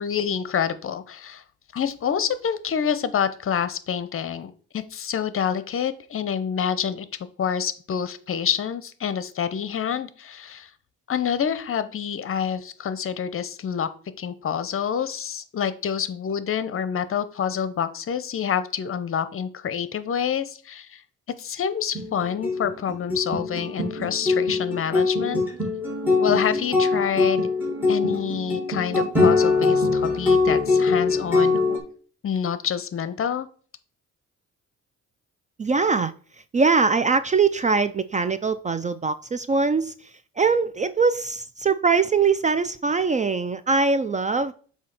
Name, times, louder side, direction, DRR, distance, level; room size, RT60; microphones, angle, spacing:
voice 1, 0.0-1.4 1.7-7.1 7.4-10.7 11.1-13.9 14.2-21.0 21.4-25.4 26.2-27.4 27.9-31.8 32.2-33.5, left 8 dB, 45° left, 0.8 m, -27 dB
sound 1, 21.9-31.8, left 3 dB, 5° right, 2.5 m, -22 dB
voice 2, 35.6-36.1 36.5-39.9 40.4-44.5, right 4 dB, 25° right, 0.4 m, -22 dB
7.4 x 2.8 x 5.9 m
cardioid pair, 90°, 30 cm